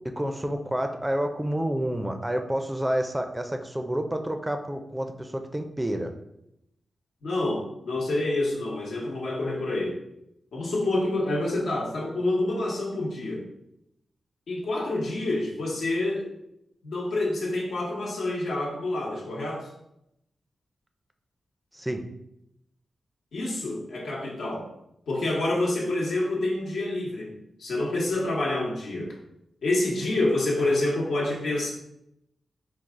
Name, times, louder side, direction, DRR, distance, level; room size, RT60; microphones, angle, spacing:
voice 1, 0.2-6.1 21.7-22.0, right 1 dB, 10° right, 6 dB, 0.4 m, -29 dB
voice 2, 7.2-10.0 10.5-13.4 14.5-16.3 16.8-19.7 23.3-24.7 25.1-27.3 27.6-29.1 29.6-31.7, left 2 dB, 90° left, -3 dB, 1.1 m, -27 dB
4.6 x 2.4 x 3.6 m, 0.81 s
wide cardioid pair, 90°, 0 cm